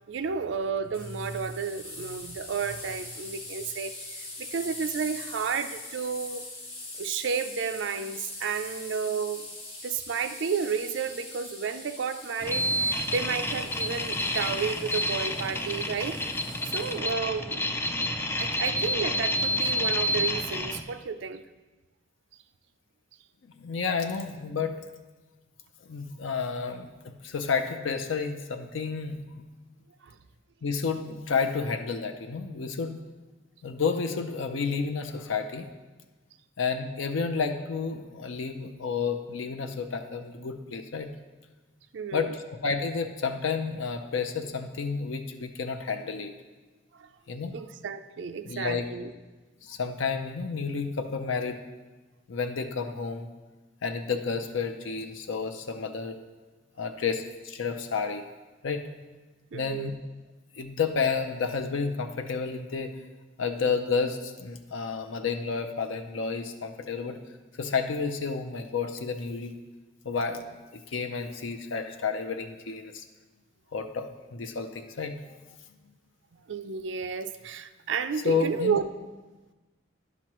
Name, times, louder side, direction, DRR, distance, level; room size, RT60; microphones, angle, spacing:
voice 1, 0.1-6.5 7.0-9.5 9.8-16.2 16.6-17.6 18.4-21.4 30.0-30.2 41.9-42.3 47.0-47.1 47.5-49.1 59.5-59.9 67.1-67.2 76.5-78.8, right 6 dB, 70° right, 9 dB, 0.4 m, -32 dB
sound 1, 0.9-16.9, left 2 dB, 30° left, 1.7 m, -43 dB
sound 2, 12.4-20.8, left 1 dB, 15° left, 0.4 m, -29 dB
voice 2, 23.6-24.7 25.9-29.4 30.6-33.0 33.6-35.7 36.6-41.1 42.1-42.3 42.6-46.3 47.3-47.5 48.5-48.9 49.6-51.6 52.3-53.3 53.8-56.2 56.8-58.2 58.6-58.8 59.5-59.9 60.6-62.9 63.4-67.2 67.6-69.6 70.0-70.5 70.7-73.1 73.7-75.1 78.2-78.8, left 5 dB, 85° left, 6 dB, 0.5 m, -30 dB
10.5 x 6.0 x 3.0 m, 1.2 s
head